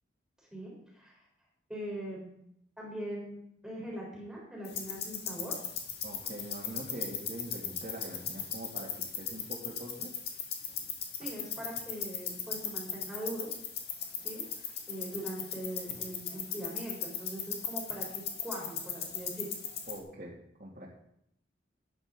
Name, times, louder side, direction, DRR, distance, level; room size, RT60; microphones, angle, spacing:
voice 1, 0.5-1.2 1.7-2.4 2.8-5.5 11.2-13.5 14.2-14.4 14.9-19.5, right 1 dB, 5° right, -4 dB, 3.9 m, -41 dB
sound 1, 4.6-20.0, left 8 dB, 60° left, 1.8 m, -38 dB
voice 2, 6.0-10.1 19.9-20.9, right 1 dB, 45° right, -6 dB, 2.3 m, -43 dB
13.0 x 9.6 x 3.8 m, 0.74 s
head